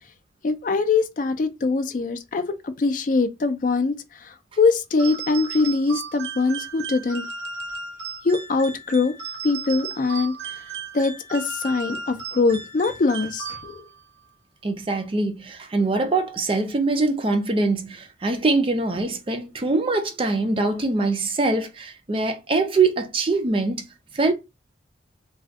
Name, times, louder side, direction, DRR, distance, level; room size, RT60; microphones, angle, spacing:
voice 1, 0.4-4.0 4.6-7.3 8.2-9.1 9.4-10.3 10.9-13.8, left 3 dB, 45° left, 0.4 m, -22 dB
sound 1, 5.0-14.0, right 5 dB, 65° right, 0.7 m, -35 dB
voice 2, 14.6-23.9 24.1-24.3, right 3 dB, 30° right, 0.4 m, -23 dB
2.5 x 2.2 x 3.4 m
head